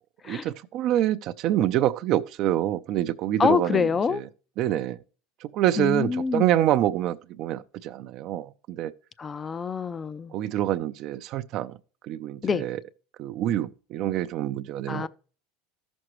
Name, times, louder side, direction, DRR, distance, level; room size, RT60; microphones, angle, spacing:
voice 1, 0.2-4.3 4.6-5.0 5.4-8.9 10.3-11.8 12.0-12.8 13.2-15.1, right 12 dB, 55° right, 0.5 m, -26 dB
voice 2, 3.4-4.2 5.8-6.5 9.2-10.3 12.4-12.7 14.9-15.1, left 5 dB, 25° left, 0.5 m, -26 dB
13.5 x 6.1 x 3.1 m
supercardioid pair, 105°, 0 cm